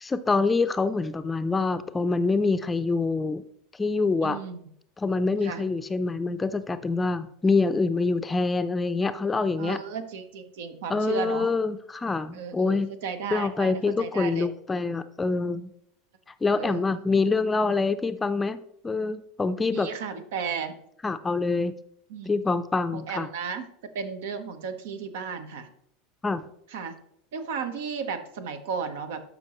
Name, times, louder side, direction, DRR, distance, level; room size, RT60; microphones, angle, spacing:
voice 1, 0.0-3.4 3.8-4.4 5.0-9.8 10.9-12.9 13.3-15.7 16.4-19.9 21.0-21.8 22.3-23.3 26.2-26.5, left 3 dB, 15° left, 12 dB, 0.5 m, -25 dB
voice 2, 4.2-4.7 5.4-5.6 9.6-11.5 12.3-14.5 16.6-16.8 19.7-20.7 22.1-22.3 22.9-23.7 23.9-25.7 26.7-27.0 27.3-29.2, right 6 dB, 85° right, 8 dB, 1.0 m, -34 dB
12.0 x 5.2 x 3.0 m, 0.70 s
supercardioid pair, 125°, 0 cm